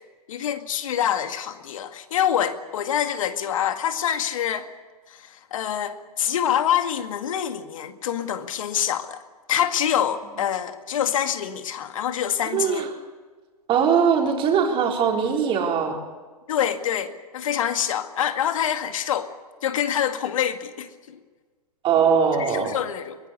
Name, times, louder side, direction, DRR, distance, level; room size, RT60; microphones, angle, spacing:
voice 1, 0.3-4.7 5.1-9.2 9.5-12.9 16.5-19.3 19.6-21.2 22.4-23.2, left 9 dB, 55° left, 9 dB, 2.0 m, -26 dB
voice 2, 12.5-12.9 13.7-16.0 21.8-22.7, right 7 dB, 25° right, 1 dB, 4.3 m, -21 dB
23.0 x 19.5 x 8.4 m, 1.4 s
figure-of-eight pair, 115°, 20 cm